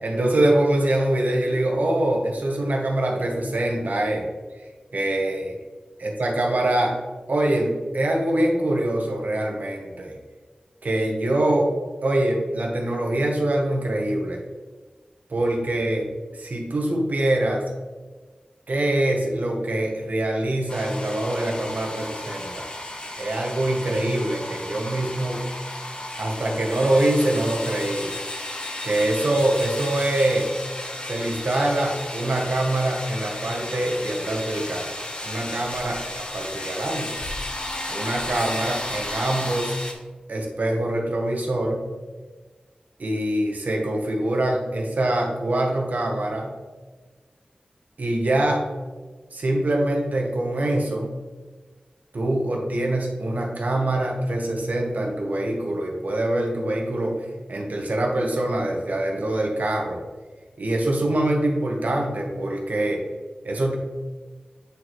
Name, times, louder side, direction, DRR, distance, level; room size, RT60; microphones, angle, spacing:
voice 1, 0.0-4.2 4.6-4.7 4.9-5.6 6.0-6.9 7.3-10.2 10.8-11.7 12.0-14.4 15.3-16.1 16.3-17.6 18.7-22.7 23.2-25.5 26.2-28.1 28.8-30.5 31.0-37.2 37.9-39.8 40.3-41.8 43.0-46.5 48.0-48.6 49.3-51.2 52.1-60.0 60.6-63.0 63.4-63.8, right 1 dB, 70° right, 0 dB, 1.1 m, -24 dB
sound 1, 20.7-39.9, left 1 dB, 35° left, 0.9 m, -33 dB
8.4 x 4.1 x 3.1 m, 1.4 s
wide cardioid pair, 65°, 3 cm